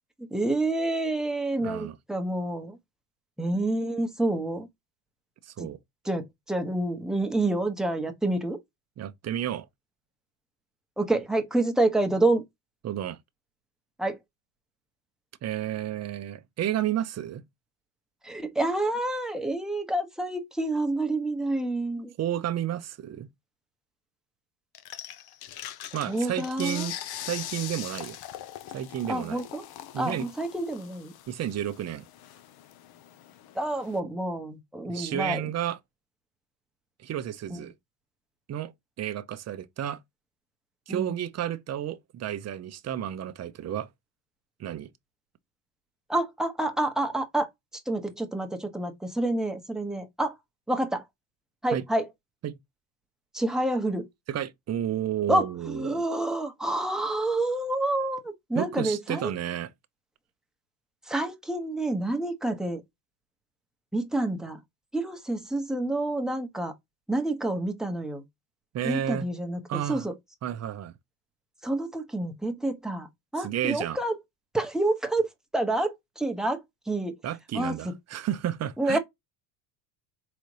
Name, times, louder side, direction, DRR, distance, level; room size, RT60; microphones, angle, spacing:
voice 1, 0.2-2.8 3.4-4.7 6.1-8.6 11.0-12.4 14.0-14.2 18.2-22.1 26.1-26.9 29.1-29.6 30.0-31.1 33.5-35.4 37.5-37.6 40.9-41.1 46.1-47.5 47.9-50.4 50.7-51.0 51.6-52.1 53.3-54.1 55.3-59.3 61.1-62.8 63.9-64.6 64.9-66.7 67.1-68.2 68.8-70.1 71.6-73.1 73.3-74.1 74.5-77.2 77.5-77.7 78.8-79.0, right 2 dB, ahead, 1.0 m, -28 dB
voice 2, 1.6-2.0 5.4-5.8 9.0-9.7 12.8-13.2 15.4-17.4 22.2-23.3 25.9-26.9 27.2-28.2 28.7-29.4 29.9-30.3 31.3-32.0 34.9-35.8 37.0-37.7 38.5-38.7 39.0-40.0 40.9-43.9 44.6-44.9 51.7-51.8 52.4-52.6 54.3-56.0 58.5-59.7 68.7-69.3 69.7-70.1 70.4-70.9 73.4-74.0 77.2-79.0, right 11 dB, 30° right, 0.7 m, -31 dB
sound 1, 24.7-34.0, left 12 dB, 50° left, 0.7 m, -42 dB
4.1 x 3.9 x 3.2 m
supercardioid pair, 95°, 50 cm